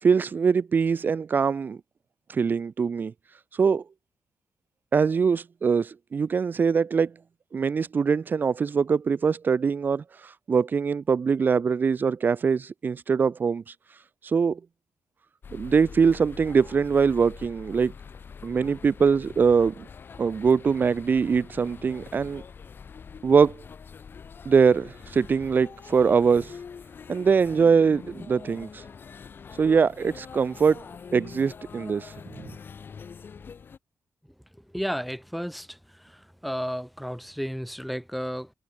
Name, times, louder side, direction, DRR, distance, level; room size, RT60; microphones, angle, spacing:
voice 1, 0.0-1.8 2.3-3.8 4.9-7.1 7.5-14.6 15.5-17.9 18.4-19.9 20.2-22.4 23.2-23.6 24.4-26.6 27.1-28.9 29.5-30.8 31.1-32.4, right 5 dB, 35° right, 1.0 m, -23 dB
sound 1, 15.4-33.8, left 6 dB, 40° left, 2.6 m, -44 dB
voice 2, 34.7-38.5, equal, ahead, 5.1 m, -33 dB
wide cardioid pair, 160°, 6 cm